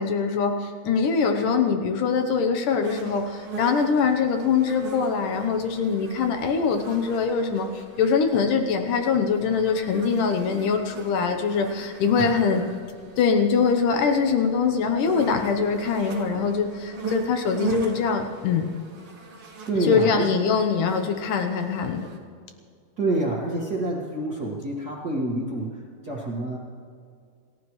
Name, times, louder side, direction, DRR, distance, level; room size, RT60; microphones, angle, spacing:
voice 1, 0.0-12.6 13.2-18.7 19.8-22.1, left 5 dB, 80° left, 5 dB, 1.9 m, -23 dB
sound 1, 2.8-22.2, right 4 dB, 50° right, 1.7 m, -40 dB
voice 2, 19.6-20.3 23.0-26.6, right 2 dB, 80° right, -4 dB, 0.8 m, -27 dB
28.0 x 15.0 x 3.2 m, 2.2 s
omnidirectional pair, 5.1 m